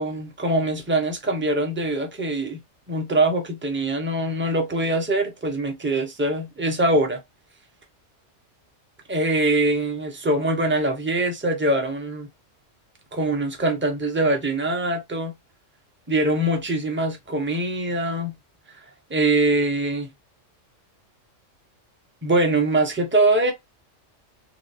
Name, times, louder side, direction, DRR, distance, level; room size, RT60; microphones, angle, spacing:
voice 1, 0.0-2.6 2.9-7.2 9.1-12.3 13.1-15.3 16.1-18.3 19.1-20.1 22.2-23.5, right 2 dB, 10° right, 0.9 m, -23 dB
3.2 x 3.0 x 4.2 m
omnidirectional pair, 1.3 m